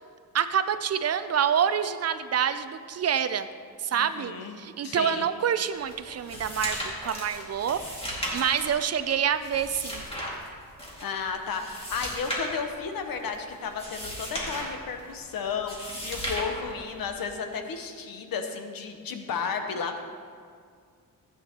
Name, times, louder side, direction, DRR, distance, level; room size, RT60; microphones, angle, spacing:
voice 1, 0.3-3.5 3.8-4.3 4.6-10.0, right 8 dB, 45° right, 11 dB, 0.4 m, -27 dB
voice 2, 3.9-4.6 4.8-5.2 11.0-20.0, left 5 dB, 70° left, 5 dB, 1.1 m, -33 dB
sound 1, 5.7-17.3, equal, 15° left, 2.2 m, -36 dB
15.5 x 8.9 x 3.0 m, 2.1 s
wide cardioid pair, 130°, 36 cm